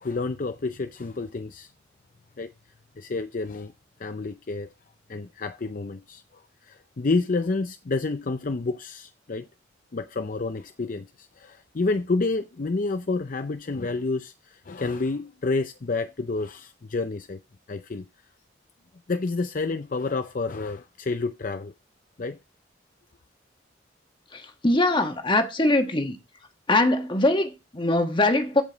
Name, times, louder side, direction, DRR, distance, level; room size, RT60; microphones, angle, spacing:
voice 1, 0.0-1.7 2.4-2.5 3.0-3.7 4.0-4.7 5.1-6.2 6.6-9.5 9.9-17.4 17.7-18.1 19.1-21.7 22.2-22.4, left 3 dB, 45° left, 0.5 m, -29 dB
voice 2, 24.3-26.2 26.7-28.6, left 2 dB, 25° left, 1.3 m, -22 dB
15.0 x 5.1 x 4.0 m
head